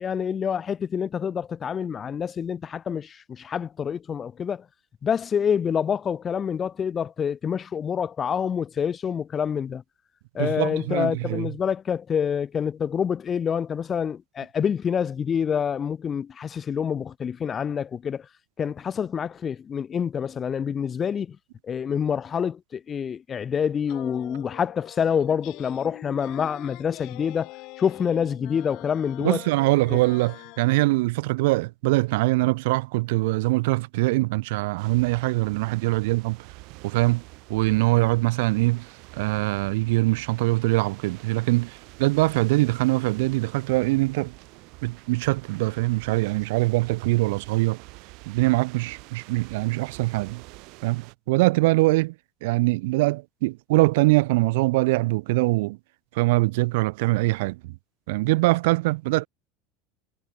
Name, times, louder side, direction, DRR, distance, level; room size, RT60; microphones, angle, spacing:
voice 1, 0.0-4.6 5.0-9.8 10.3-18.2 18.6-21.4 21.7-27.5 27.8-29.4 29.9-30.0, left 7 dB, 20° left, 0.6 m, -27 dB
voice 2, 10.4-11.5 29.2-36.4 36.8-37.2 37.5-38.9 39.2-44.3 44.8-47.8 48.3-50.4 50.8-52.1 52.4-55.8 56.1-57.7 58.1-59.3, right 22 dB, 70° right, 1.4 m, -23 dB
sound 1, 23.9-30.9, left 24 dB, 50° left, 5.9 m, -44 dB
sound 2, 34.8-51.1, right 27 dB, 50° right, 4.5 m, -47 dB
supercardioid pair, 165°, 0 cm